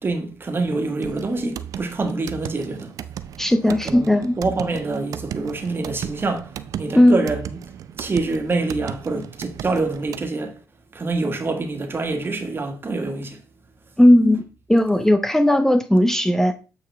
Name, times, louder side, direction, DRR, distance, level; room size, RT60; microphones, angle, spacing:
voice 1, 0.0-2.9 3.7-4.1 4.4-6.5 6.8-7.6 8.0-10.6 10.9-13.4, right 3 dB, 40° right, 1.8 m, -26 dB
sound 1, 1.0-10.3, right 9 dB, 75° right, 0.6 m, -36 dB
voice 2, 3.4-4.4 6.9-7.2 14.0-14.4 14.7-16.6, left 1 dB, 5° left, 0.8 m, -16 dB
8.4 x 4.9 x 3.5 m
cardioid pair, 70°, 6 cm